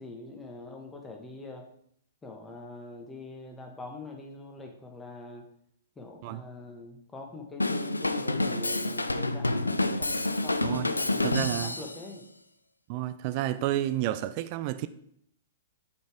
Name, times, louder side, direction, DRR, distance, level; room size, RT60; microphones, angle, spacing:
voice 1, 0.0-1.7 2.2-5.5 6.0-12.3, left 3 dB, 15° left, 1.2 m, -44 dB
Drum kit / Drum, 7.6-12.0, left 2 dB, 90° left, 0.3 m, -28 dB
voice 2, 11.2-11.7 12.9-14.9, right 13 dB, 40° right, 0.3 m, -30 dB
8.3 x 4.1 x 3.5 m
figure-of-eight pair, 110°, 0 cm